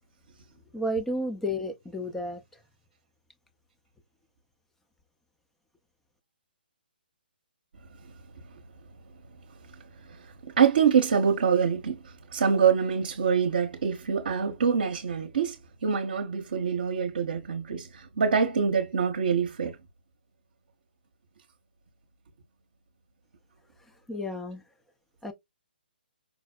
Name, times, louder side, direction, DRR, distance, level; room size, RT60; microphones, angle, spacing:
voice 1, 0.7-2.4 24.1-24.6 25.2-25.3, equal, 5° left, 0.5 m, -31 dB
voice 2, 10.6-12.0 12.3-19.8, right 6 dB, 65° right, 0.8 m, -25 dB
5.0 x 2.0 x 2.3 m
figure-of-eight pair, 140°, 5 cm